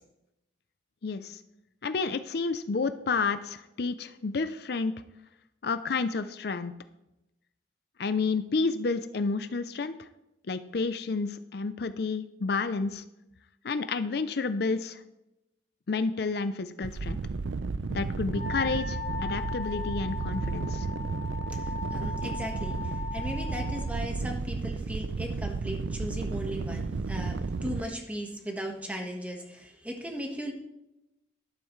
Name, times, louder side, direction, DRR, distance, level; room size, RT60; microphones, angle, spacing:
voice 1, 1.0-1.4 1.8-4.9 5.6-6.7 8.0-10.1 10.5-13.0 13.6-15.0 15.9-17.2 17.9-20.9, left 4 dB, 60° left, 11 dB, 0.5 m, -30 dB
sound 1, 16.8-27.8, right 4 dB, 90° right, 0.5 m, -33 dB
Wind instrument woodwind instrument, 18.3-23.9, left 3 dB, 40° left, 1.9 m, -38 dB
voice 2, 21.5-30.5, equal, 10° right, 2 dB, 1.4 m, -37 dB
12.0 x 12.0 x 3.2 m, 0.91 s
head